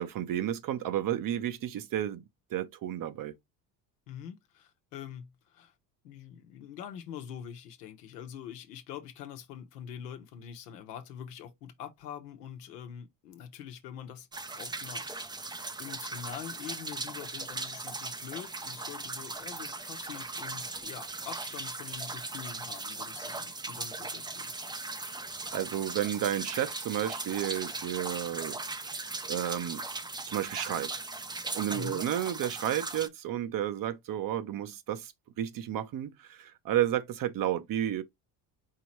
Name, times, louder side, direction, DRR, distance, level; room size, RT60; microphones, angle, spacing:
voice 1, 0.0-2.2 2.5-3.3 25.5-28.6 29.3-29.8 30.3-31.0 31.5-35.1 35.4-38.0, right 11 dB, 45° right, 0.7 m, -32 dB
voice 2, 4.1-5.7 6.0-14.3 14.6-15.1 15.8-24.5 31.7-32.0, left 9 dB, 85° left, 1.0 m, -44 dB
sound 1, 14.3-33.1, right 3 dB, 10° right, 0.5 m, -38 dB
4.8 x 2.9 x 3.1 m
hypercardioid pair, 70°, 47 cm